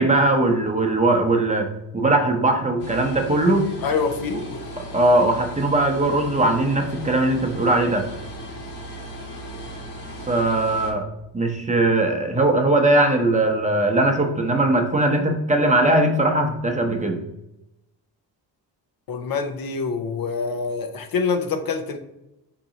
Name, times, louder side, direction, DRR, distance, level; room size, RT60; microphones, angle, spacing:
voice 1, 0.0-1.7 1.9-3.7 4.9-8.1 10.3-11.0 11.3-17.2, right 2 dB, 15° right, 3 dB, 0.8 m, -20 dB
sound 1, 2.8-10.9, right 1 dB, 80° left, 1.4 m, -36 dB
voice 2, 3.8-4.6 19.1-22.0, left 5 dB, 55° left, 6 dB, 0.8 m, -26 dB
4.6 x 2.9 x 3.9 m, 0.89 s
supercardioid pair, 70°, 41 cm